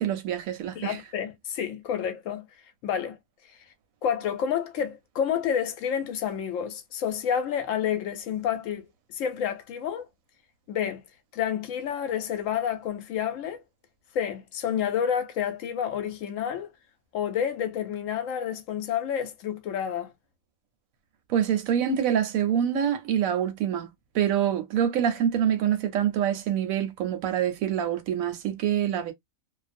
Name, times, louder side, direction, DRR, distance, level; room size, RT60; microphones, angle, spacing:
voice 1, 0.0-1.0 21.3-29.1, right 9 dB, 80° right, 1.0 m, -26 dB
voice 2, 0.8-2.5 2.8-3.2 4.0-8.8 9.1-10.1 10.7-11.0 11.3-13.6 14.1-16.7 17.1-20.1, left 8 dB, 70° left, 0.9 m, -29 dB
2.5 x 2.0 x 2.5 m
omnidirectional pair, 1.5 m